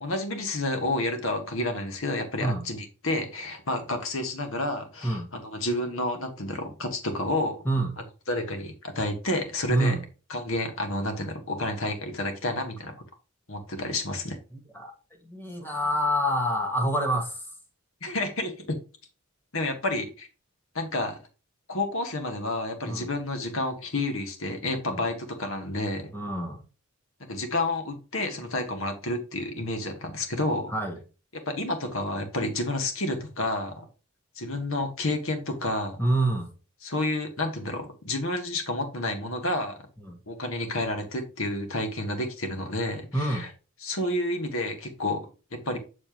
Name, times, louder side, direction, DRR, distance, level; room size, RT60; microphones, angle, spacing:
voice 1, 0.0-7.6 8.3-10.0 10.3-13.0 13.5-14.4 18.0-18.8 19.5-20.3 20.7-21.2 21.7-26.1 27.2-30.7 31.4-33.9 34.4-36.0 36.8-39.8 40.3-43.5 43.8-45.8, left 2 dB, 65° left, 1.5 m, -30 dB
voice 2, 7.6-8.0 9.7-10.0 14.5-14.9 15.2-17.4 22.8-23.1 24.9-25.0 26.1-26.6 30.7-31.0 36.0-36.5 40.0-40.2 43.1-43.5, right 1 dB, 10° left, 1.4 m, -27 dB
7.0 x 6.8 x 3.0 m
head